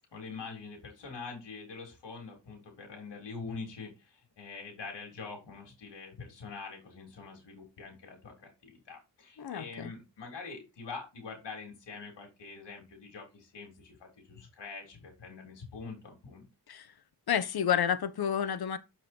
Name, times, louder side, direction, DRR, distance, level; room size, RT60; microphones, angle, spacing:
voice 1, 0.1-16.5, left 4 dB, 85° left, 3.5 m, -45 dB
voice 2, 9.4-9.9 16.7-16.9 17.3-18.8, left 8 dB, 65° left, 1.1 m, -30 dB
7.2 x 5.8 x 4.4 m
cardioid pair, 75°, 41 cm